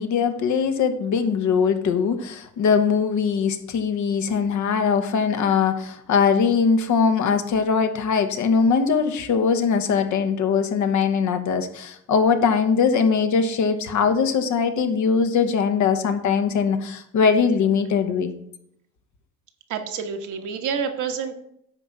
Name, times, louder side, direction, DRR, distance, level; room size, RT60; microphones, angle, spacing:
voice 1, 0.0-18.3, left 6 dB, 75° left, 8 dB, 1.2 m, -21 dB
voice 2, 19.7-21.3, right 6 dB, 80° right, 5 dB, 1.3 m, -28 dB
9.8 x 3.8 x 7.1 m, 0.70 s
cardioid pair, 90°, 30 cm